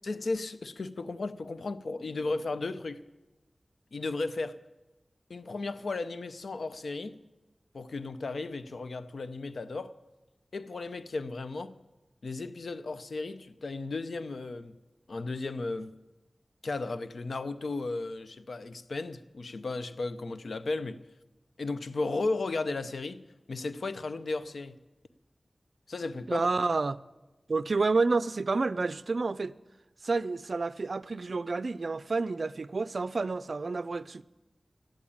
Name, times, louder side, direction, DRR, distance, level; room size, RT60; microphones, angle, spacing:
voice 1, 0.0-3.0 3.9-4.6 5.3-7.2 7.7-9.9 10.5-11.7 12.2-14.8 15.1-15.9 16.6-21.0 21.6-24.8 25.9-26.5, left 3 dB, 85° left, 0.6 m, -35 dB
voice 2, 26.3-27.0 27.5-29.5 30.0-34.2, right 3 dB, 70° right, 0.4 m, -29 dB
13.0 x 10.0 x 8.7 m
wide cardioid pair, 60°, 0 cm